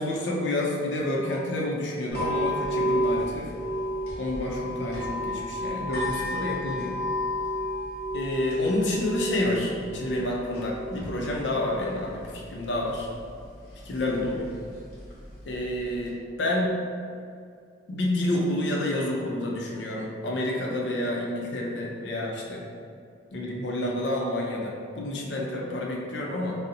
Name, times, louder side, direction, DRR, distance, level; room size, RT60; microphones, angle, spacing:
voice 1, 0.0-3.5 4.2-7.0 8.1-12.2 12.5-13.1 13.8-14.5 15.5-16.1 16.4-16.7 17.9-22.6 23.3-26.6, left 1 dB, 90° left, -1 dB, 0.5 m, -29 dB
sound 1, 2.1-16.1, left 1 dB, 60° left, 1.0 m, -32 dB
2.6 x 2.0 x 3.9 m, 2.3 s
head